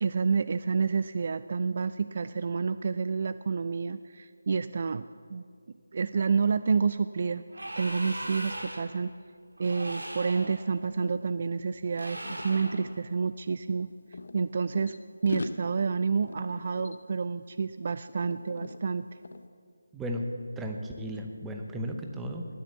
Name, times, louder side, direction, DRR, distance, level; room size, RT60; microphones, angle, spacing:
voice 1, 0.0-5.4 5.9-7.4 7.8-9.1 9.6-13.9 14.3-14.9 15.2-19.0, right 5 dB, 45° right, 13 dB, 0.3 m, -29 dB
sound 1, 7.5-9.0 9.6-10.6 11.9-12.9, right 1 dB, 80° right, 2.2 m, -39 dB
sound 2, 9.7-9.8 10.1-12.9 13.7-15.0 15.3-17.8 18.1-18.8 19.2-19.5, left 2 dB, 65° left, 0.8 m, -41 dB
voice 2, 19.9-20.3 20.6-22.5, equal, 5° right, 3 dB, 0.9 m, -35 dB
19.0 x 7.3 x 7.1 m, 2.2 s
figure-of-eight pair, 160°, 0 cm